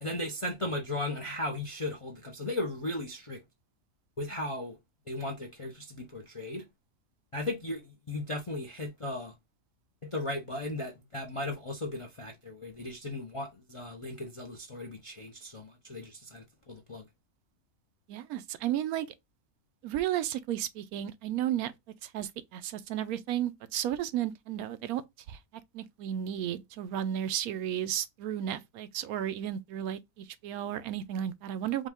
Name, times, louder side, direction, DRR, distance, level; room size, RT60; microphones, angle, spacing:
voice 1, 0.0-3.4 4.2-4.8 5.1-6.6 7.3-9.3 10.0-17.0, left 2 dB, 40° left, 0.4 m, -36 dB
voice 2, 18.1-19.1 19.8-21.7 22.0-25.0 25.3-25.4 25.7-31.9, right 11 dB, 85° right, 1.1 m, -33 dB
5.1 x 2.2 x 3.5 m
omnidirectional pair, 1.5 m